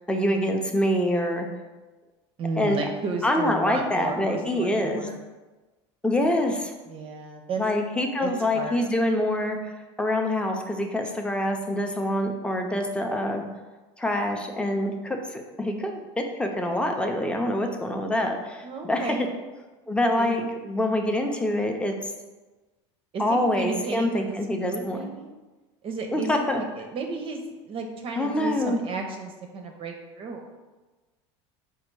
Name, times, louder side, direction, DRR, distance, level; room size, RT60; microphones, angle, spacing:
voice 1, 0.1-1.5 2.6-2.9 3.2-5.1 6.0-6.7 7.6-13.4 14.0-19.1 19.9-21.9 23.2-25.0 26.1-26.6 28.2-28.8, left 1 dB, 5° left, 3 dB, 0.5 m, -25 dB
voice 2, 2.4-5.2 6.9-7.6 8.2-8.8 18.6-19.3 20.2-20.4 23.1-25.3 25.8-27.4 27.7-30.6, right 4 dB, 40° right, 3 dB, 0.5 m, -33 dB
4.2 x 2.3 x 4.5 m, 1.2 s
hypercardioid pair, 95°, 15 cm